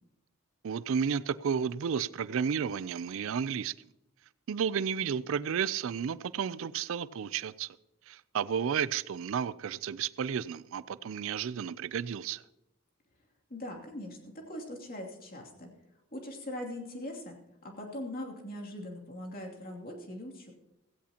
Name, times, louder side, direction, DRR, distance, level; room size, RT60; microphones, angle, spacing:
voice 1, 0.6-3.7 4.5-7.8 8.1-12.4, right 7 dB, 70° right, 0.4 m, -32 dB
voice 2, 13.5-15.7 16.1-17.3 17.6-20.5, left 1 dB, 45° left, 2.7 m, -41 dB
16.5 x 15.5 x 2.9 m
head